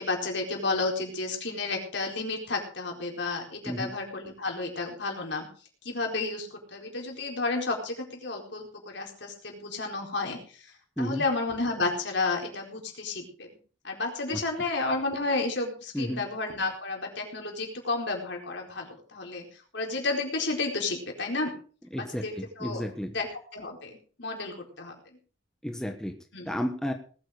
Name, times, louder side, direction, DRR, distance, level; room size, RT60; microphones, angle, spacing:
voice 1, 0.0-5.5 5.8-10.7 11.0-13.5 13.8-19.4 19.7-21.5 21.9-22.8 23.1-23.3 23.5-24.9 26.3-26.5, left 3 dB, 65° left, 1 dB, 4.4 m, -31 dB
voice 2, 21.9-23.1 25.6-26.1 26.5-26.9, equal, 5° left, 4 dB, 1.2 m, -32 dB
19.5 x 9.0 x 4.9 m, 0.40 s
head